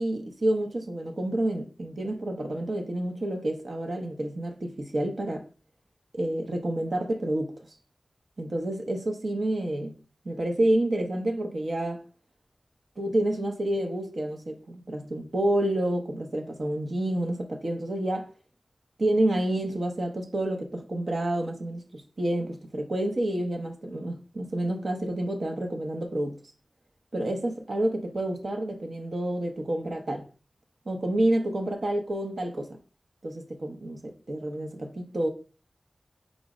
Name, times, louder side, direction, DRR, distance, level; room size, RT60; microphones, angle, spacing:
voice 1, 0.0-5.4 6.1-7.5 8.4-9.9 10.2-12.0 13.0-18.3 19.0-26.4 27.1-30.2 30.9-32.8 33.2-35.3, right 1 dB, 75° right, 0.7 m, -29 dB
5.0 x 2.0 x 4.8 m
wide cardioid pair, 80°, 0 cm